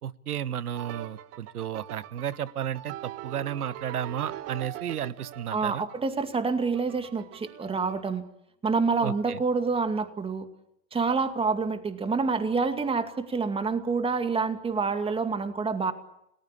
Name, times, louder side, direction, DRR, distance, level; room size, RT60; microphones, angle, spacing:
voice 1, 0.0-5.9 9.0-9.4, right 10 dB, 85° right, 18 dB, 1.2 m, -33 dB
sound 1, 0.8-8.0, right 14 dB, 35° right, 1.3 m, -42 dB
voice 2, 5.5-8.2 8.6-10.5 10.9-15.9, right 4 dB, 10° right, 8 dB, 2.3 m, -27 dB
29.5 x 19.5 x 8.5 m, 0.80 s
hypercardioid pair, 115°, 44 cm